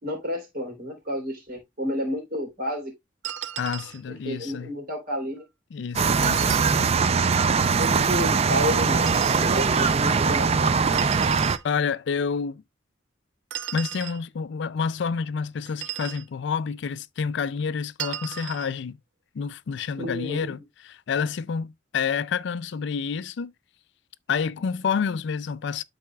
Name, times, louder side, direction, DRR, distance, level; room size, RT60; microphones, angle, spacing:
voice 1, 0.0-2.9 4.1-5.4 6.4-6.9 7.8-9.1 9.4-11.0 20.0-20.4, equal, 50° right, 3.3 m, -31 dB
sound 1, 3.2-4.0 6.2-7.0 9.0-9.5 10.9-11.6 13.5-14.2 15.7-16.3 18.0-18.7, right 11 dB, 80° right, 0.6 m, -35 dB
voice 2, 3.6-4.7 5.7-6.9 11.6-12.6 13.7-19.0 19.3-23.5 24.3-25.8, left 6 dB, 65° left, 0.4 m, -29 dB
sound 2, 6.0-11.6, right 5 dB, 35° right, 0.4 m, -21 dB
12.5 x 4.2 x 2.3 m
head